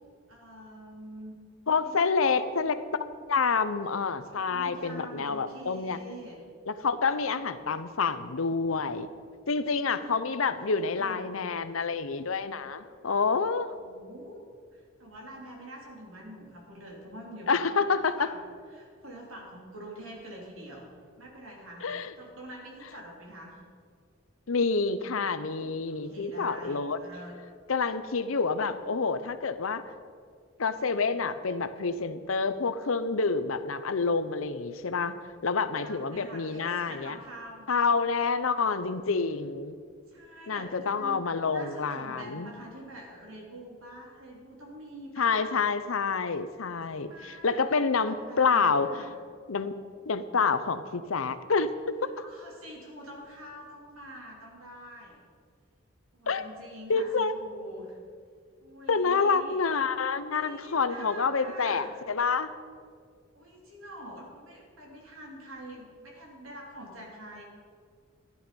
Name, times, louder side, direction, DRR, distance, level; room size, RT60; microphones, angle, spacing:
voice 1, 0.3-1.3 1.8-2.7 4.3-6.4 10.0-10.2 10.5-11.3 13.7-14.4 14.7-17.5 17.8-20.9 21.2-23.6 25.9-27.4 35.7-37.8 40.1-45.6 46.9-49.1 52.2-55.2 56.1-58.0 58.6-59.6 60.4-61.9 63.3-67.4, right 1 dB, 85° right, -1 dB, 3.4 m, -46 dB
voice 2, 1.7-2.7 3.3-6.0 6.7-9.1 9.5-13.7 17.5-18.2 21.8-22.1 24.5-27.0 27.7-29.8 30.6-35.2 35.4-37.2 37.7-39.7 40.5-42.5 45.2-48.9 49.5-49.8 50.1-52.1 56.3-56.4 56.9-57.3 58.9-62.5, left 4 dB, 80° left, 12 dB, 0.7 m, -28 dB
14.0 x 11.0 x 5.3 m, 2.1 s
head